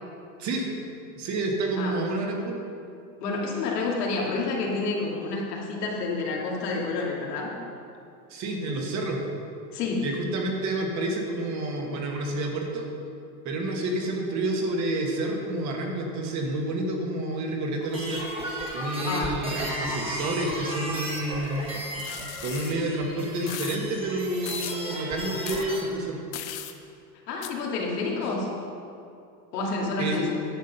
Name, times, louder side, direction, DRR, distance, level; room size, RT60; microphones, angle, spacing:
voice 1, 1.1-2.6 8.3-9.2 10.0-12.9 13.4-18.3 18.7-21.7 22.4-26.2 30.0-30.2, right 2 dB, 35° right, 1 dB, 1.6 m, -29 dB
voice 2, 3.2-7.5 9.7-10.0 19.0-19.3 27.3-28.5 29.5-30.3, left 3 dB, 85° left, -2 dB, 2.6 m, -29 dB
sound 1, 17.8-25.8, right 1 dB, 10° right, 1.7 m, -35 dB
sound 2, 22.0-22.7 23.5-23.8 24.5-24.8 25.4-25.7 26.3-26.7 27.4-27.5, left 13 dB, 60° left, 0.9 m, -37 dB
10.5 x 7.4 x 5.4 m, 2.5 s
supercardioid pair, 135°, 46 cm